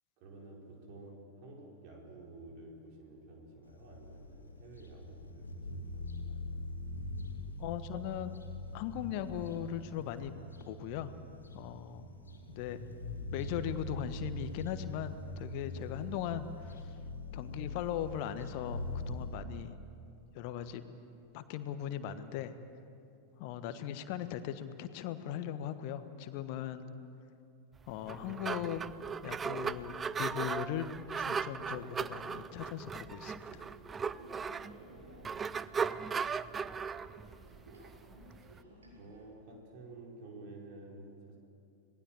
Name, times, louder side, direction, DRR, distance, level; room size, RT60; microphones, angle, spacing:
voice 1, 0.2-6.5 39.0-41.4, right 2 dB, 45° right, 0 dB, 5.1 m, -51 dB
sound 1, 3.6-19.3, left 1 dB, 75° left, 2.7 m, -43 dB
voice 2, 7.6-8.4 8.7-10.3 10.7-11.1 11.5-12.1 12.5-12.8 13.3-16.8 17.3-18.8 19.1-19.7 20.3-20.8 21.3-22.5 23.4-26.9 27.9-28.8 29.2-30.9 31.1-33.6, left 10 dB, 45° left, 11 dB, 1.3 m, -39 dB
sound 2, 27.9-38.6, right 6 dB, 20° right, 0.5 m, -37 dB
sound 3, 28.3-39.2, right 1 dB, 70° right, 5.4 m, -56 dB
26.5 x 19.5 x 7.4 m, 2.6 s
figure-of-eight pair, 90°, 0 cm